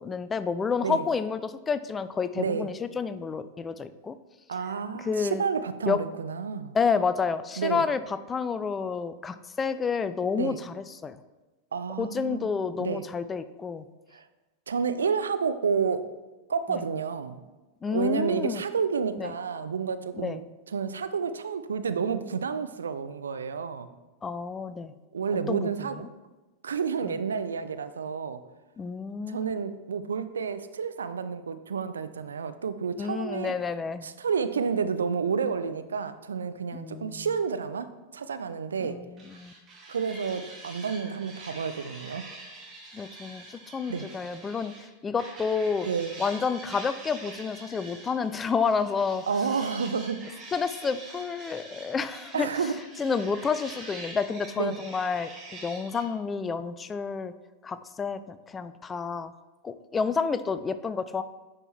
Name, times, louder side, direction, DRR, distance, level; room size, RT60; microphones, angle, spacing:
voice 1, 0.0-4.1 4.9-5.4 5.9-6.0 6.7-11.2 12.0-13.8 16.7-16.8 17.8-18.6 19.2-19.3 20.2-20.4 24.2-24.9 25.5-25.7 27.0-27.2 28.8-29.5 33.0-34.1 36.7-37.3 38.8-39.5 42.9-45.9 46.2-49.2 50.5-52.7 53.0-55.3 55.6-57.3 57.6-59.3 59.6-61.2, left 5 dB, 20° left, 13 dB, 0.3 m, -30 dB
voice 2, 2.4-2.7 4.5-6.7 7.6-7.8 10.4-10.6 11.7-12.5 12.8-13.0 14.1-14.2 14.7-16.1 16.5-17.4 17.9-20.4 20.7-23.9 25.1-26.1 26.6-28.4 29.3-33.5 34.0-39.0 39.9-42.3 43.9-44.1 45.8-46.1 49.3-50.2 52.3-52.8 54.6-54.8, right 6 dB, 70° right, 11 dB, 0.4 m, -30 dB
sound 1, 39.2-44.9 45.2-56.1, right 2 dB, 25° right, 1.9 m, -45 dB
9.6 x 4.4 x 3.2 m, 1.1 s
figure-of-eight pair, 90°, 0 cm